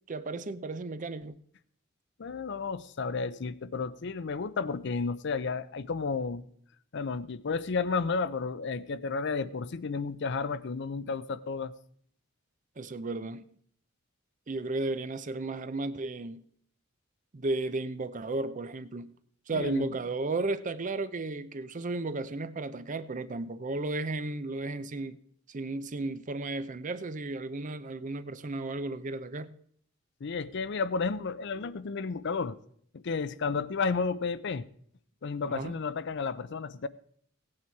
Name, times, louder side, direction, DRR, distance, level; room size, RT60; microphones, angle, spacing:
voice 1, 0.1-1.4 12.8-13.4 14.5-16.4 17.3-19.1 19.5-25.2 25.5-29.5 35.4-35.7, right 2 dB, 40° right, 14 dB, 0.6 m, -34 dB
voice 2, 2.2-6.4 6.9-11.7 19.5-19.9 30.2-32.6 33.0-34.7 35.2-36.9, left 4 dB, 55° left, 15 dB, 0.5 m, -32 dB
16.5 x 8.6 x 4.6 m, 0.63 s
head